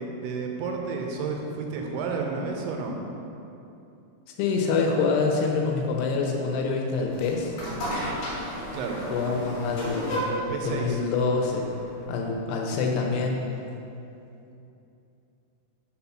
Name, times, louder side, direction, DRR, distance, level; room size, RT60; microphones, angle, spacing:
voice 1, 0.0-3.0 8.7-9.1 10.3-11.0, right 4 dB, 85° right, 1 dB, 2.6 m, -31 dB
voice 2, 4.4-7.5 9.1-10.3 10.6-11.7 12.1-13.4, left 4 dB, 85° left, 0 dB, 2.9 m, -26 dB
sound 1, 7.1-12.3, equal, 65° left, 2.6 m, -33 dB
6.2 x 4.2 x 5.8 m, 2.8 s
omnidirectional pair, 4.7 m